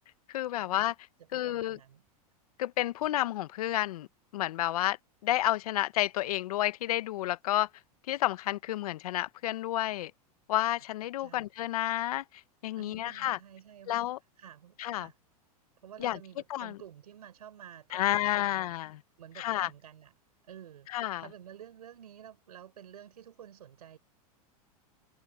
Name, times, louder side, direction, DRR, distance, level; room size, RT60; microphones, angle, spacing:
voice 1, 0.3-0.9 1.3-1.8 2.6-4.1 4.3-5.0 5.2-7.7 8.1-10.1 10.5-12.2 12.6-13.4 13.9-14.2 14.8-15.1 16.0-16.2 16.5-16.8 17.9-19.0 19.4-19.7 20.9-21.3, left 14 dB, 75° left, 1.3 m, -30 dB
voice 2, 1.2-2.0 11.2-11.5 12.8-14.1 14.4-15.2 15.8-18.7 19.2-20.1 20.4-20.9 21.2-24.0, right 10 dB, 85° right, 4.5 m, -51 dB
hypercardioid pair, 105°, 19 cm